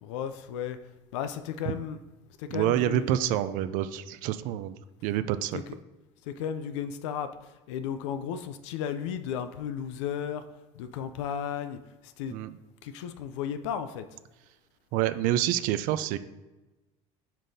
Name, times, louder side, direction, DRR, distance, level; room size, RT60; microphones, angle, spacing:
voice 1, 0.0-0.8 1.1-2.0 2.4-3.4 6.3-7.3 7.7-10.4 10.8-11.8 12.2-12.4 12.8-14.1, left 8 dB, 85° left, 10 dB, 0.4 m, -34 dB
voice 2, 2.5-5.6 12.3-12.6 14.9-16.2, right 13 dB, 65° right, 12 dB, 0.4 m, -28 dB
7.3 x 5.1 x 2.7 m, 1.1 s
supercardioid pair, 90°, 15 cm